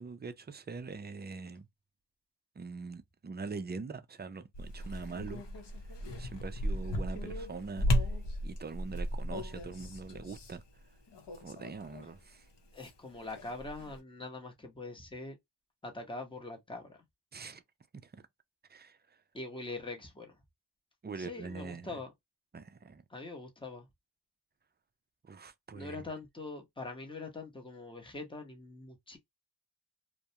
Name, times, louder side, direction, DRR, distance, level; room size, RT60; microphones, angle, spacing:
voice 1, 0.0-1.7 2.6-5.4 6.2-8.1 8.4-10.6 11.4-12.5 17.3-17.6 18.0-18.1 18.7-19.2 21.0-22.0 22.5-23.0 25.2-26.0, right 4 dB, 25° right, 0.3 m, -43 dB
sound 1, 4.5-12.2 12.4-14.0, equal, 60° left, 0.8 m, -36 dB
voice 2, 12.7-15.4 15.8-17.0 19.3-20.3 21.2-22.1 23.1-23.9 25.7-29.2, left 2 dB, 10° left, 0.8 m, -43 dB
2.3 x 2.1 x 2.7 m
wide cardioid pair, 50°, 48 cm